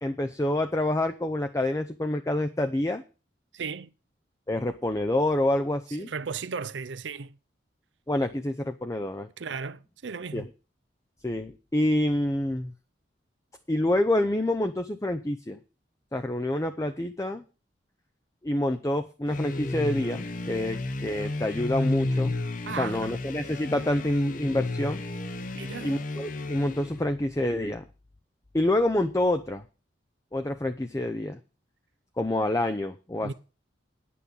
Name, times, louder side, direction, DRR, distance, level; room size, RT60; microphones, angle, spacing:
voice 1, 0.0-3.0 4.5-6.1 8.1-9.3 10.3-10.4 11.2-12.7 13.7-15.6 16.1-17.4 18.4-22.3 22.8-25.0 25.8-27.8 28.5-29.6 30.3-31.4 32.2-33.3, left 1 dB, 15° left, 0.6 m, -27 dB
voice 2, 3.5-3.9 6.0-7.4 9.4-10.5 22.7-23.2 25.5-26.0 33.2-33.3, right 5 dB, 85° right, 0.6 m, -35 dB
sound 1, 19.3-27.1, left 2 dB, 45° left, 0.8 m, -32 dB
10.0 x 8.5 x 5.3 m
head